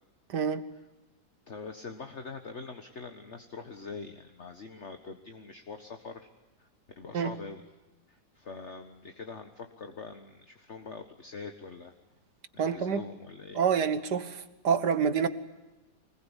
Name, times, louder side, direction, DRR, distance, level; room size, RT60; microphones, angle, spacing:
voice 1, 0.3-0.6 7.1-7.3 12.6-13.0 13.6-15.3, right 7 dB, 80° right, 11 dB, 2.1 m, -27 dB
voice 2, 1.5-6.3 6.6-6.7 7.0-7.7 8.1-11.9 12.5-13.6, left 4 dB, 45° left, 6 dB, 1.7 m, -44 dB
25.0 x 21.0 x 10.0 m, 1.1 s
omnidirectional pair, 1.8 m